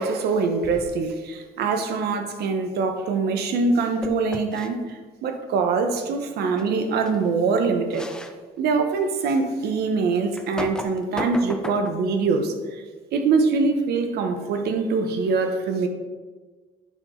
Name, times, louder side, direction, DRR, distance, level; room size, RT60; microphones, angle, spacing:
voice 1, 0.0-8.1 8.6-12.8 13.1-15.9, right 4 dB, 70° right, 6 dB, 1.1 m, -24 dB
sound 1, 0.6-1.1 4.0-4.7 6.6-6.7 7.1-7.2 7.9-8.4 8.9-9.0 10.3-12.1, left 1 dB, 5° left, 0.6 m, -34 dB
9.6 x 6.1 x 3.9 m, 1.4 s
cardioid pair, 110°, 17 cm